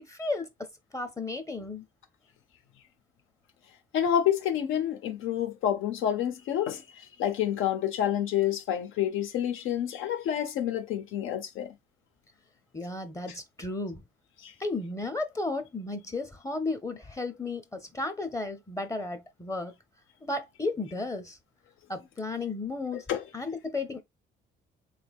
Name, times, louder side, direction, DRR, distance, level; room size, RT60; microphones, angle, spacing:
voice 1, 0.1-0.5 0.9-1.8 12.7-14.0 14.6-19.7 20.2-21.4 21.9-23.1 23.3-24.0, left 3 dB, 15° left, 0.6 m, -34 dB
voice 2, 3.9-6.8 7.2-11.7 14.4-14.5 23.1-23.2, left 10 dB, 85° left, 0.7 m, -28 dB
3.4 x 3.3 x 2.3 m
cardioid pair, 90°, 20 cm